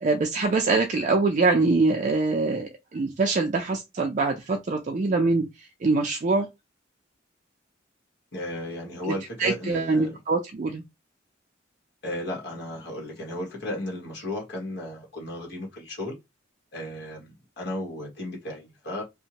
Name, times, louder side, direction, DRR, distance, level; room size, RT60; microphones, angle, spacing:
voice 1, 0.0-5.4 5.8-6.5 9.4-10.8, right 3 dB, 40° right, 0.4 m, -24 dB
voice 2, 8.3-10.2 12.0-16.2 16.7-19.0, left 1 dB, 60° left, 1.2 m, -34 dB
2.6 x 2.1 x 2.8 m
head